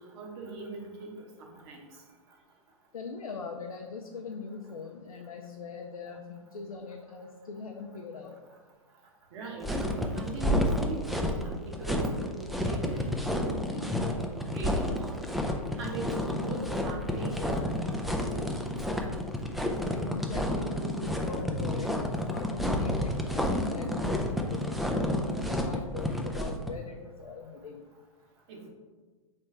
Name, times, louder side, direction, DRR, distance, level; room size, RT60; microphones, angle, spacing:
voice 1, 0.1-1.1 1.6-1.8 9.3-15.2 15.8-16.1 16.4-19.2 28.5-28.7, right 3 dB, 50° right, 0 dB, 1.1 m, -40 dB
voice 2, 2.9-8.4 20.0-22.0 22.3-27.8, left 5 dB, 90° left, 2 dB, 0.4 m, -41 dB
sound 1, 9.6-26.7, left 1 dB, ahead, 0.3 m, -30 dB
4.4 x 3.3 x 3.2 m, 1.4 s
hypercardioid pair, 110°, 18 cm